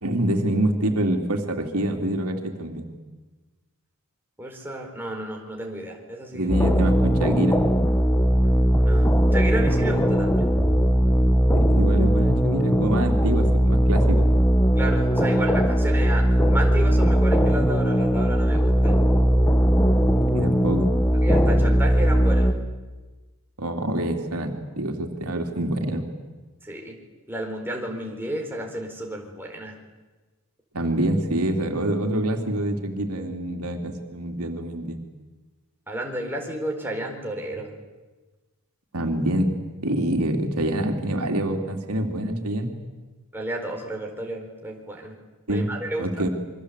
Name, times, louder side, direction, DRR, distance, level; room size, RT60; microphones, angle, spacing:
voice 1, 0.0-2.9 6.3-7.6 11.5-14.2 20.3-20.9 23.6-26.1 30.7-35.0 38.9-39.6 39.8-42.7 45.5-45.7 46.0-46.3, right 1 dB, 85° right, 4 dB, 3.2 m, -26 dB
voice 2, 4.4-6.5 8.8-10.5 14.8-19.0 21.2-22.5 26.6-27.0 27.3-29.8 35.9-37.7 43.3-45.2 45.5-46.2, right 1 dB, 10° right, 0 dB, 4.3 m, -32 dB
sound 1, 6.5-22.5, equal, 10° left, 1.6 m, -19 dB
27.5 x 24.0 x 8.3 m, 1.2 s
head